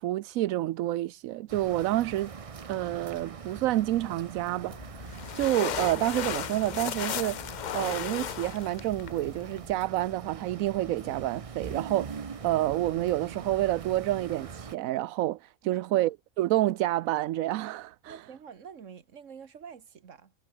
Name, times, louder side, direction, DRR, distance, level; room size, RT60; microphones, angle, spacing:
voice 1, 0.0-2.3 2.7-7.4 7.7-18.2, right 15 dB, 85° right, 1.0 m, -29 dB
sound 1, 1.5-14.8, right 5 dB, 35° right, 0.6 m, -43 dB
sound 2, 4.7-9.7, left 10 dB, 75° left, 0.4 m, -36 dB
voice 2, 18.1-20.3, right 7 dB, 65° right, 1.7 m, -47 dB
omnidirectional pair, 1.4 m